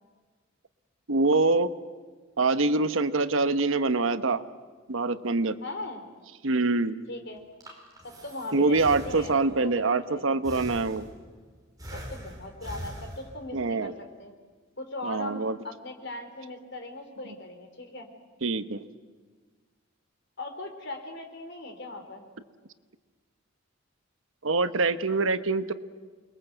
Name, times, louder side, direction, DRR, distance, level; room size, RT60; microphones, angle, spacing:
voice 1, 1.1-1.7 2.4-4.4 4.9-5.6 6.4-7.0 8.5-11.0 13.5-13.9 15.0-15.6 18.4-18.8 24.4-25.7, right 3 dB, 75° right, 11 dB, 1.0 m, -25 dB
voice 2, 5.6-6.0 7.1-7.4 8.0-10.2 11.9-13.9 14.2-14.3 14.8-18.1 20.4-22.3, left 2 dB, 55° left, 5 dB, 3.6 m, -39 dB
Breathing, 7.4-9.7 10.4-11.4 11.8-13.6, equal, 20° right, 4.7 m, -42 dB
28.5 x 21.5 x 7.9 m, 1.5 s
head